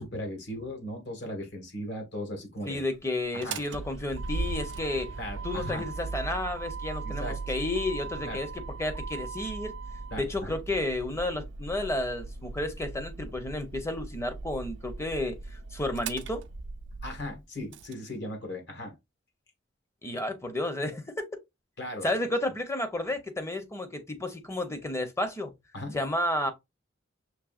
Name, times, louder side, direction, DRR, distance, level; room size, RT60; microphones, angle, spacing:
voice 1, 0.0-2.8 3.3-3.6 5.2-5.8 7.0-7.4 8.2-8.4 10.1-10.6 17.0-18.9 21.8-22.1 25.7-26.0, left 1 dB, 60° left, 1.6 m, -37 dB
voice 2, 2.6-5.1 5.4-8.5 8.8-9.7 10.2-16.4 20.0-21.2 22.0-25.5 25.9-26.5, left 1 dB, 15° left, 0.7 m, -32 dB
Motor vehicle (road), 3.3-17.9, right 4 dB, 65° right, 0.4 m, -38 dB
6.0 x 3.2 x 2.4 m
head